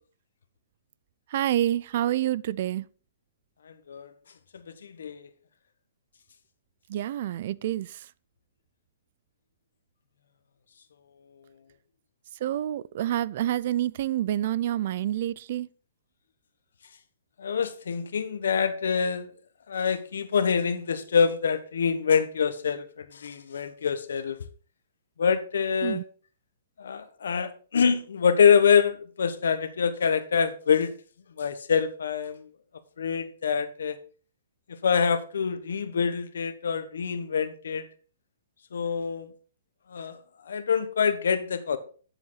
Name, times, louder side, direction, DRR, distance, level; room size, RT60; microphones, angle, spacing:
voice 1, 1.3-2.9 6.9-8.0 12.4-15.7 25.8-26.0, right 12 dB, 40° right, 0.3 m, -28 dB
voice 2, 4.5-5.3 17.4-19.3 19.7-24.4 25.2-26.0 26.8-30.9 31.4-32.4 33.0-34.0 34.8-37.8 38.7-39.3 39.9-40.2 40.5-41.8, left 6 dB, 80° left, 1.3 m, -25 dB
10.0 x 7.2 x 4.0 m
hypercardioid pair, 175°, 0 cm